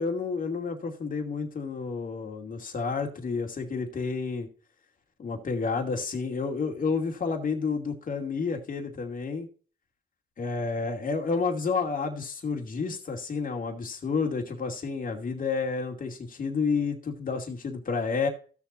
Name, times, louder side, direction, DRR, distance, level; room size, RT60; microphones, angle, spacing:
voice 1, 0.0-4.5 5.2-9.5 10.4-18.3, left 4 dB, 45° left, 2 dB, 2.5 m, -30 dB
15.5 x 7.1 x 2.6 m, 0.39 s
cardioid pair, 90°, 20 cm